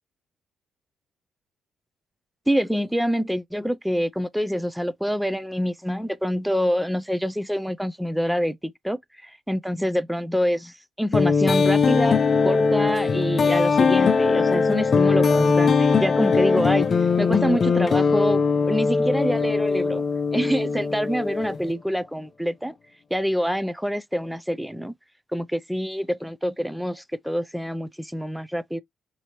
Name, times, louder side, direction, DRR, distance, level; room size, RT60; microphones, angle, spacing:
voice 1, 2.5-16.9 17.2-18.4 18.7-20.0 20.3-22.8 23.1-24.9 25.3-28.8, equal, ahead, 0.4 m, -26 dB
sound 1, 11.1-21.7, left 5 dB, 45° left, 0.6 m, -20 dB
4.9 x 2.7 x 2.8 m
cardioid pair, 90°, 0 cm